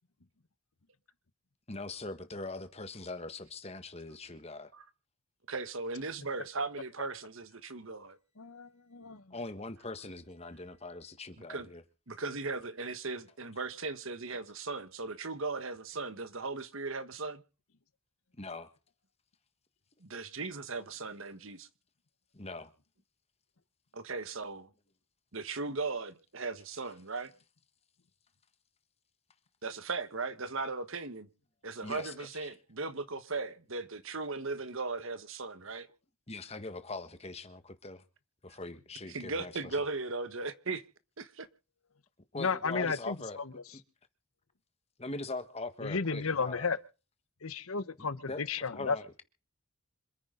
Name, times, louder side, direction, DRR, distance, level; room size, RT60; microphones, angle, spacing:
voice 1, 1.7-4.7 9.3-11.8 18.4-18.7 22.3-22.7 31.8-32.5 36.3-38.0 38.4-39.5 42.3-43.4 43.7-43.8 45.0-46.7 48.0-49.2, left 2 dB, 30° left, 1.5 m, -42 dB
voice 2, 5.5-8.2 11.5-11.7 12.1-17.4 20.0-21.7 23.9-24.7 25.3-27.3 29.6-31.3 31.6-35.9 39.1-40.8 41.2-41.5, right 3 dB, 65° right, 1.4 m, -37 dB
voice 3, 8.4-9.3 42.3-43.5 45.8-46.8 47.4-49.0, left 5 dB, 75° left, 1.1 m, -33 dB
26.5 x 9.7 x 3.9 m
head